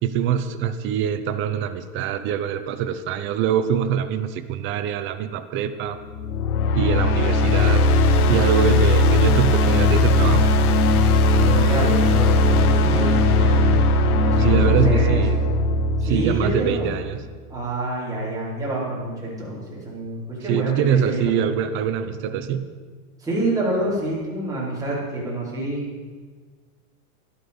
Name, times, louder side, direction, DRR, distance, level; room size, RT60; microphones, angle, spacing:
voice 1, 0.0-6.0 6.7-7.9 8.3-10.5 14.4-15.4 16.0-17.2 20.5-22.8, right 8 dB, 25° right, 10 dB, 0.7 m, -24 dB
sound 1, 6.1-17.2, left 2 dB, 75° left, 1.3 m, -18 dB
voice 2, 11.3-15.3 16.0-16.9 17.5-21.5 23.2-25.9, right 2 dB, 10° right, -8 dB, 4.5 m, -27 dB
12.5 x 11.5 x 5.4 m, 1.5 s
supercardioid pair, 145°, 45 cm